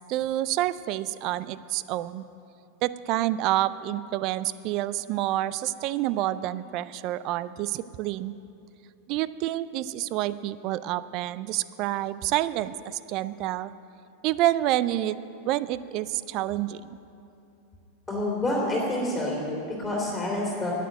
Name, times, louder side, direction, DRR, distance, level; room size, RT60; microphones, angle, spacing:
voice 1, 0.0-2.2 2.8-8.4 9.1-13.7 14.2-15.2 15.4-17.0, right 14 dB, 50° right, 16 dB, 0.4 m, -28 dB
voice 2, 18.1-20.7, left 1 dB, 10° left, -3 dB, 2.9 m, -28 dB
10.0 x 9.1 x 9.1 m, 2.6 s
hypercardioid pair, 120°, 0 cm